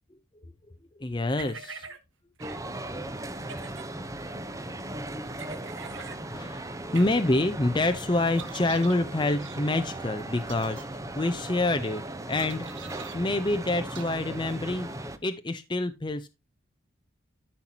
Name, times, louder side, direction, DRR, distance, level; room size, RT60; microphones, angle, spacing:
voice 1, 1.0-1.9 6.2-12.0 12.3-12.7 13.1-15.0 15.2-16.3, left 2 dB, 25° left, 0.7 m, -27 dB
sound 1, 1.4-2.0 2.4-2.6 3.4-3.9 5.4-6.2 6.9-7.1 8.4-9.0 9.4-9.6 10.4-10.8 12.4-13.2 13.9-14.1, right 6 dB, 65° right, 1.7 m, -43 dB
sound 2, 2.4-15.2, right 1 dB, 15° right, 0.9 m, -37 dB
13.0 x 5.8 x 2.9 m
head